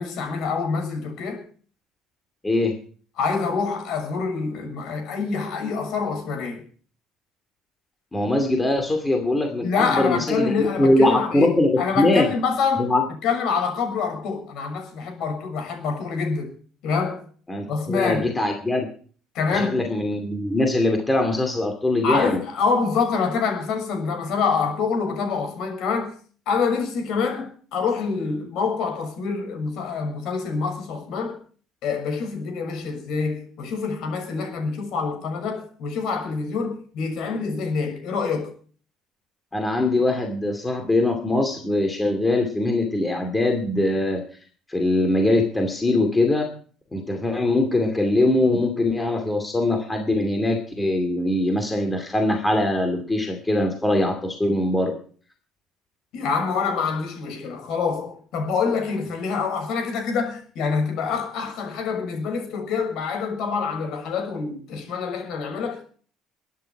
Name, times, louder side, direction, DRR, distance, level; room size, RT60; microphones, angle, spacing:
voice 1, 0.0-1.4 3.2-6.6 9.6-12.9 13.2-16.5 16.8-17.2 17.7-18.3 19.3-19.9 22.0-26.1 26.5-31.4 31.8-38.5 56.1-65.8, left 5 dB, 55° left, 6.5 m, -26 dB
voice 2, 8.1-12.3 12.8-13.0 17.5-18.9 19.5-22.4 39.5-44.2 44.7-46.5 46.9-54.9, left 2 dB, 10° left, 2.5 m, -22 dB
23.0 x 10.5 x 4.8 m
cardioid pair, 160°, 0 cm